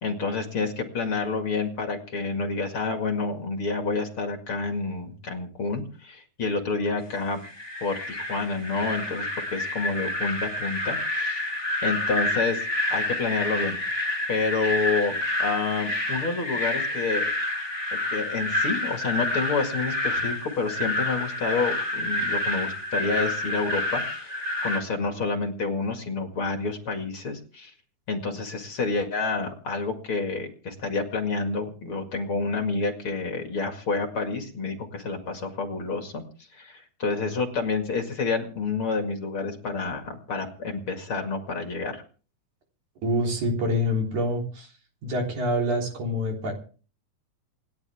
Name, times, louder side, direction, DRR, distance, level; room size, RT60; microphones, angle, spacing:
voice 1, 0.0-7.4 7.8-12.6 12.9-13.8 14.3-15.1 15.4-17.2 17.9-27.7 28.1-36.2 36.5-42.0, left 4 dB, 45° left, 4 dB, 2.6 m, -29 dB
sound 1, 7.4-24.8, left 1 dB, 5° right, 3.9 m, -29 dB
voice 2, 43.0-44.7 45.0-46.5, left 1 dB, 65° right, 1 dB, 5.0 m, -26 dB
27.5 x 10.5 x 3.5 m, 0.39 s
omnidirectional pair, 3.6 m